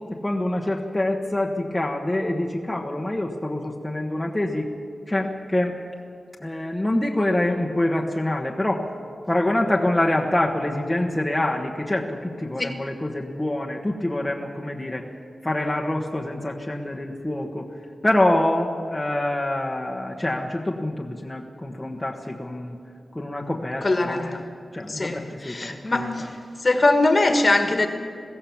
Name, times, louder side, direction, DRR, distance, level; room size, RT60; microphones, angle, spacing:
voice 1, 0.1-4.7 5.1-5.8 6.4-8.8 9.3-15.0 15.4-17.7 18.0-22.8 23.1-24.3 24.7-26.3, left 1 dB, 10° left, -1 dB, 1.2 m, -25 dB
voice 2, 23.8-24.4 24.9-25.2 25.4-26.3 26.6-27.9, left 2 dB, 30° left, 5 dB, 1.7 m, -21 dB
21.5 x 16.5 x 7.2 m, 2.2 s
wide cardioid pair, 170°, 0 cm